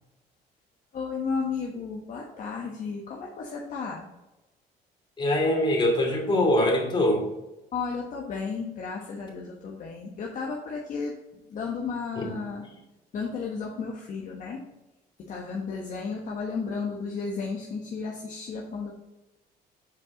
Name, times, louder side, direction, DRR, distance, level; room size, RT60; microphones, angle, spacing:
voice 1, 0.9-4.1 7.7-11.1 11.5-12.6 13.1-14.6 15.3-18.9, left 5 dB, 50° left, -1 dB, 1.2 m, -33 dB
voice 2, 5.2-7.3 12.2-12.3, left 1 dB, 30° left, 0 dB, 2.6 m, -23 dB
7.5 x 4.8 x 3.9 m, 0.99 s
cardioid pair, 110°, 17 cm